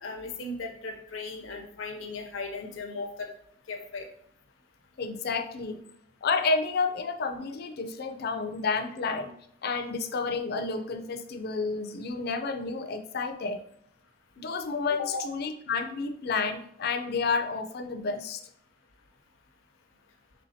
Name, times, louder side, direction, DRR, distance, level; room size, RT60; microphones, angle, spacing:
voice 1, 0.0-3.3 3.7-4.1 15.1-15.2, left 3 dB, 90° left, 3 dB, 0.7 m, -37 dB
voice 2, 5.0-5.8 6.2-9.3 9.6-13.6 14.4-18.4, left 4 dB, 55° left, 7 dB, 0.4 m, -30 dB
4.3 x 3.4 x 2.7 m, 0.70 s
head